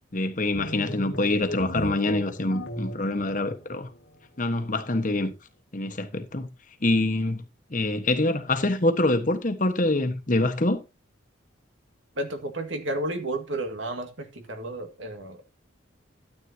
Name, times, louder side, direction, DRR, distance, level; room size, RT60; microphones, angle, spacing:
voice 1, 0.1-3.9 4.4-5.3 5.7-6.5 6.8-10.8, left 2 dB, 45° left, 1.3 m, -25 dB
sound 1, 0.5-4.1, equal, 80° left, 1.7 m, -37 dB
voice 2, 12.2-15.4, right 1 dB, 75° right, 2.1 m, -32 dB
12.5 x 8.7 x 2.8 m
head